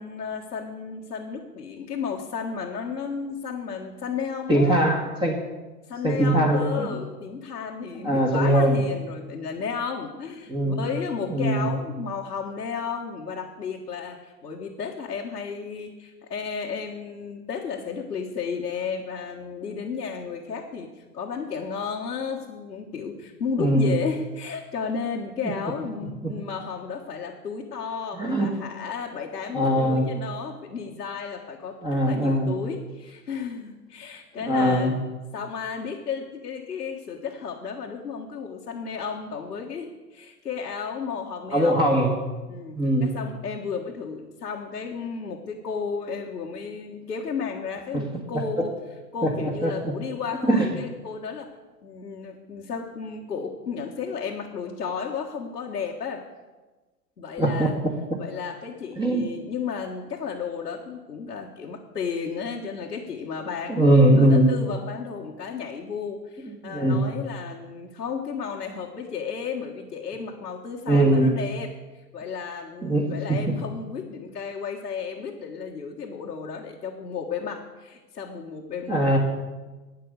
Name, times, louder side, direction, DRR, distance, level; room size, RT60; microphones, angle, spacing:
voice 1, 0.0-4.8 5.9-35.0 35.3-41.8 42.5-48.7 49.1-51.5 51.8-56.2 57.2-57.7 58.2-71.7 72.1-79.2, left 6 dB, 90° left, -2 dB, 1.6 m, -33 dB
voice 2, 4.5-5.4 6.0-6.9 8.0-8.8 10.5-10.9 11.3-11.6 23.6-23.9 26.0-26.3 28.1-28.5 29.5-30.1 31.8-32.5 34.5-34.9 41.5-42.2 42.7-43.2 48.6-48.7 49.2-49.9 50.5-50.7 57.4-57.9 59.0-59.2 63.7-64.5 66.6-67.0 70.9-71.4 72.8-73.5 78.9-79.2, right 1 dB, 10° right, -1 dB, 1.6 m, -21 dB
12.5 x 8.9 x 6.6 m, 1.2 s
hypercardioid pair, 120°, 48 cm